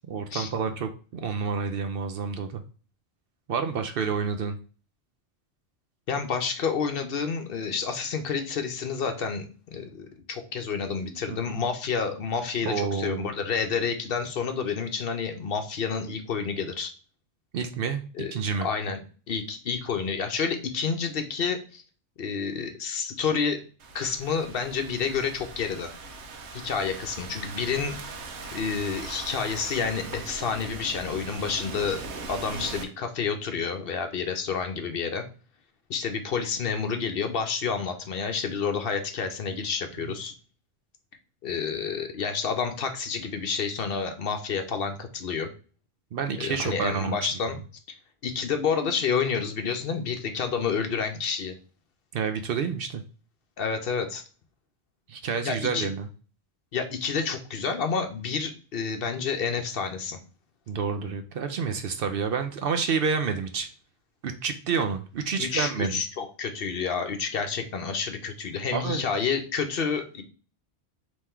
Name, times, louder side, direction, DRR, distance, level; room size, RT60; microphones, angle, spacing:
voice 1, 0.1-2.6 3.5-4.6 11.3-11.6 12.6-13.3 17.5-18.0 18.3-18.7 46.1-47.2 52.1-53.0 55.1-56.1 60.7-63.7 64.2-66.0 68.7-69.0, right 5 dB, 60° right, 7 dB, 0.7 m, -29 dB
voice 2, 6.1-16.9 18.1-18.3 18.6-19.0 19.3-21.8 22.2-23.6 23.9-25.9 26.5-28.0 28.5-32.0 32.3-35.2 35.9-40.3 41.4-45.5 46.4-47.6 48.2-51.5 53.6-54.2 55.4-55.9 56.7-60.2 65.4-70.2, left 6 dB, 60° left, 6 dB, 0.8 m, -29 dB
Thunderstorm / Rain, 23.8-32.8, right 3 dB, 80° right, 1.0 m, -40 dB
3.6 x 3.1 x 4.3 m, 0.37 s
omnidirectional pair, 1.1 m